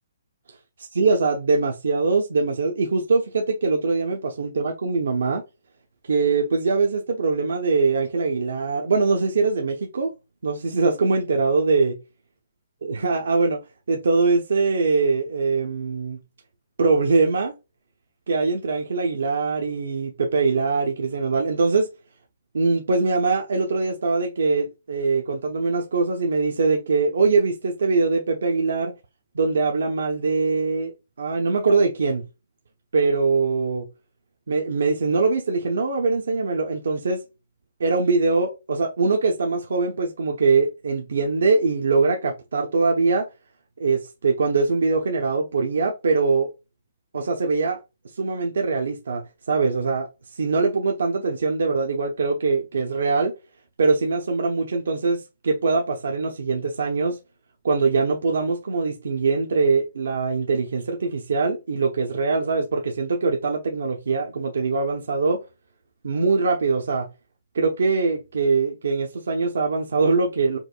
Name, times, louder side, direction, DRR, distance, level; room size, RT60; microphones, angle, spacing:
voice 1, 0.8-5.4 6.1-10.1 10.4-12.0 12.8-13.6 13.9-16.2 16.8-17.5 18.3-21.9 22.5-28.9 29.3-30.9 31.2-32.2 32.9-33.9 34.5-37.2 37.8-43.3 43.8-46.5 47.1-47.8 48.2-50.1 50.3-53.3 53.8-57.2 57.6-65.4 66.0-67.1 67.5-70.6, right 4 dB, 85° right, 0.7 m, -22 dB
4.6 x 2.5 x 2.2 m
hypercardioid pair, 165°, 0 cm